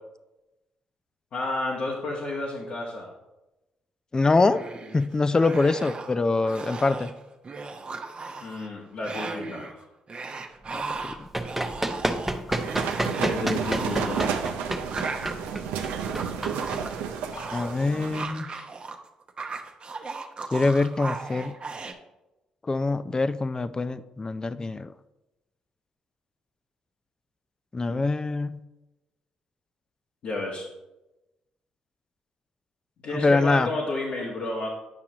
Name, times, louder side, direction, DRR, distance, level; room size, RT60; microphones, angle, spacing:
voice 1, 1.3-3.1 8.4-9.8 13.2-14.3 17.3-17.5 30.2-30.7 33.0-34.7, left 2 dB, 65° left, -5 dB, 1.3 m, -31 dB
voice 2, 4.1-4.6 4.9-7.1 10.7-10.8 11.2-11.3 17.5-18.6 20.5-21.5 22.6-24.9 27.7-28.6 33.1-33.7, left 3 dB, 25° left, 13 dB, 0.4 m, -24 dB
sound 1, 4.5-5.1 5.4-6.2 6.4-7.1 7.4-8.7 9.0-9.7 10.1-19.0 19.2-21.9, right 4 dB, 40° right, 0.8 m, -37 dB
Run, 11.0-17.4, right 1 dB, 5° right, 0.8 m, -30 dB
sound 2, 12.5-18.3, right 7 dB, 80° right, 0.5 m, -31 dB
8.7 x 5.9 x 2.9 m, 0.99 s
hypercardioid pair, 50°, 3 cm